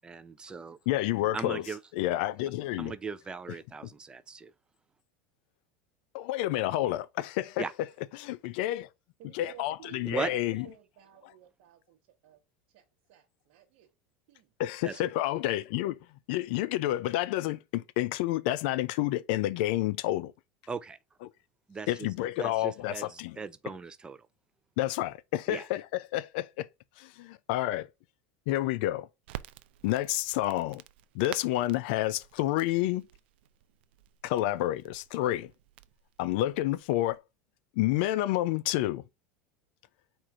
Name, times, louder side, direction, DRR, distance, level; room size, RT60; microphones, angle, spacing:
voice 1, 0.0-0.8 1.3-1.8 2.8-4.5 7.6-7.7 10.1-10.3 14.8-14.9 20.7-21.0 21.7-22.1 22.4-23.1 23.4-24.2 25.5-25.6, right 4 dB, 15° right, 0.4 m, -37 dB
voice 2, 0.9-1.7 1.9-2.9 6.1-7.7 8.1-8.9 9.3-10.7 14.6-16.0 16.3-20.3 21.2-21.3 21.9-23.4 24.8-26.7 27.0-27.9 28.5-29.1 29.8-30.8 31.1-33.1 34.2-35.5 36.2-37.2 37.8-39.0, left 15 dB, 70° left, 0.4 m, -29 dB
voice 3, 9.2-12.0 12.2-12.4 12.7-13.9 14.3-14.5, right 12 dB, 65° right, 1.0 m, -54 dB
Crackle, 29.2-37.2, right 14 dB, 80° right, 0.4 m, -49 dB
4.4 x 2.5 x 4.7 m
supercardioid pair, 125°, 6 cm